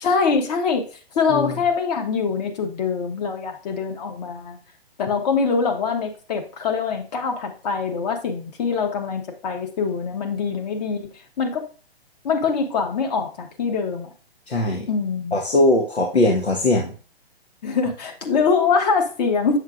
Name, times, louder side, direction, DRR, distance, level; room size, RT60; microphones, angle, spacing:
voice 1, 0.0-0.9 1.1-4.6 5.0-11.6 12.2-14.1 14.9-15.4 17.6-19.6, left 5 dB, 40° left, 4 dB, 1.2 m, -23 dB
voice 2, 1.3-1.6 14.5-14.9 15.3-16.9, left 2 dB, 90° left, 0 dB, 1.2 m, -20 dB
8.0 x 6.6 x 2.4 m, 0.38 s
figure-of-eight pair, 130°, 31 cm